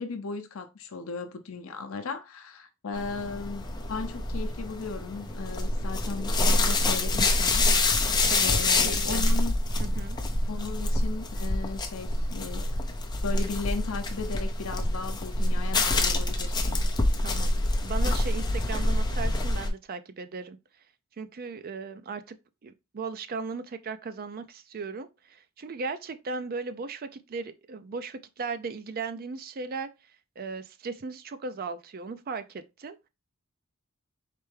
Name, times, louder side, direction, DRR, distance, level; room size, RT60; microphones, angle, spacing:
voice 1, 0.0-7.7 8.4-9.5 10.5-12.8 13.2-16.8, left 4 dB, 70° left, 0.6 m, -36 dB
sound 1, 3.0-19.7, left 2 dB, 20° left, 0.6 m, -26 dB
voice 2, 8.8-9.3 9.8-10.2 17.2-17.5 17.8-20.6 21.2-22.4 22.6-29.9 30.4-33.1, right 4 dB, 45° right, 0.4 m, -37 dB
4.3 x 3.3 x 3.3 m
head